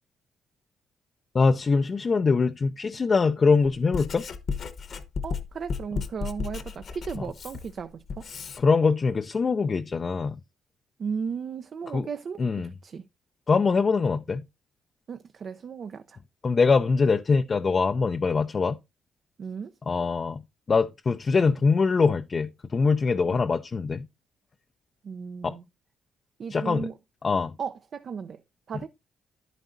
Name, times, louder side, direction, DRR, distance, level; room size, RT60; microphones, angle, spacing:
voice 1, 1.3-4.2 7.2-7.3 8.6-10.4 11.9-12.1 12.4-12.7 13.5-14.4 16.4-18.8 19.9-20.4 20.7-24.1 25.4-25.6 26.5-26.9 27.2-27.5, left 4 dB, 35° left, 0.4 m, -23 dB
Writing, 3.6-8.6, left 5 dB, 55° left, 1.0 m, -34 dB
voice 2, 5.2-8.2 11.0-12.4 12.8-13.0 15.1-16.2 19.4-19.7 23.3-23.4 25.0-25.6 26.4-26.9 27.6-28.4 28.7-28.9, right 6 dB, 50° right, 0.5 m, -35 dB
10.0 x 9.2 x 2.6 m
cardioid pair, 90°, 0 cm